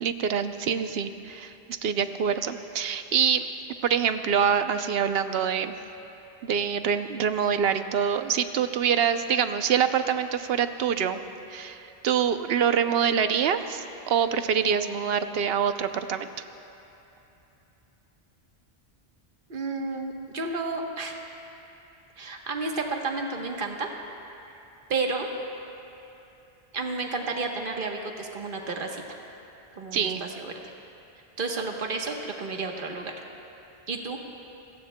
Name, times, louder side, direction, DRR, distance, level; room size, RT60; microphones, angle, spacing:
voice 1, 0.0-3.5 3.8-5.7 6.4-11.2 11.5-16.3 29.9-30.2, right 7 dB, 75° right, 9 dB, 0.9 m, -25 dB
voice 2, 19.5-21.1 22.2-23.9 24.9-25.3 26.7-29.0 29.8-30.5 31.4-33.1 33.9-34.2, right 3 dB, 55° right, 2 dB, 1.3 m, -31 dB
29.0 x 16.5 x 2.2 m, 3.0 s
omnidirectional pair, 1.0 m